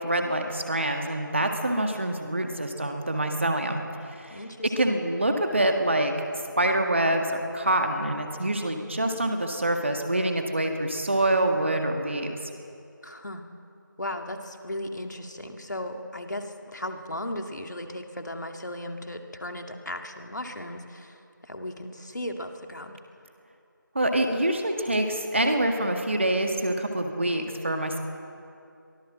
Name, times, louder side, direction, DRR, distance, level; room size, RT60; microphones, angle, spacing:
voice 1, 0.0-3.8 4.2-4.4 4.8-6.1 6.6-12.4 24.0-28.0, right 1 dB, 35° right, 4 dB, 1.8 m, -26 dB
voice 2, 4.3-5.0 13.0-13.4 14.0-23.0, left 1 dB, 60° left, 4 dB, 2.3 m, -36 dB
23.0 x 15.5 x 7.6 m, 2.5 s
figure-of-eight pair, 175°, 11 cm